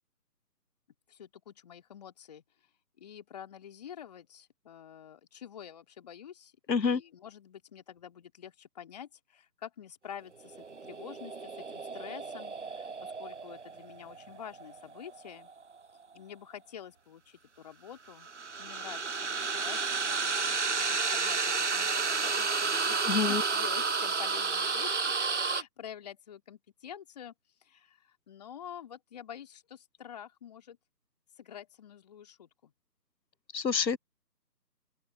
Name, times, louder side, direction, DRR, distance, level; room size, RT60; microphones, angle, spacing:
voice 1, 1.1-2.4 3.0-10.6 10.8-15.5 16.1-18.3 18.6-27.3 27.6-30.8 31.4-32.7, left 9 dB, 25° left, 3.2 m, -48 dB
voice 2, 6.7-7.0 23.0-23.4 33.5-34.0, left 5 dB, 90° left, 0.9 m, -27 dB
sound 1, 10.4-15.6 18.1-25.6, right 4 dB, 45° right, 0.6 m, -32 dB
open air
figure-of-eight pair, 155°, 49 cm